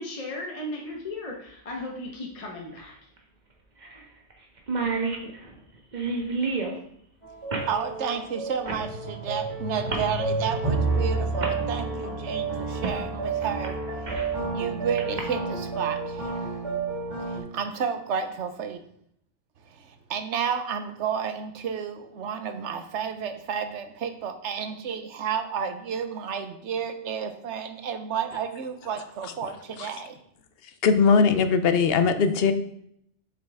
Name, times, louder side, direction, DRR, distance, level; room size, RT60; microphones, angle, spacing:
voice 1, 0.0-2.9, left 1 dB, 35° left, 0.9 m, -36 dB
sound 1, 0.9-1.0 2.7-2.8 3.2-3.3 3.8-4.0 4.3-4.4 4.6-6.8 7.5-7.7 8.6-8.9 9.9-10.1 10.9-11.0 11.4-11.6 12.8-13.0 13.4-14.4 15.0-15.2, right 4 dB, 40° right, 1.2 m, -30 dB
sound 2, 7.2-17.4, right 3 dB, 25° right, 2.2 m, -30 dB
voice 2, 7.7-14.2 14.5-16.5 17.2-18.8 19.6-30.2, right 7 dB, 85° right, 1.1 m, -31 dB
voice 3, 30.8-32.5, left 5 dB, 65° left, 0.8 m, -20 dB
7.7 x 5.6 x 3.4 m
omnidirectional pair, 1.2 m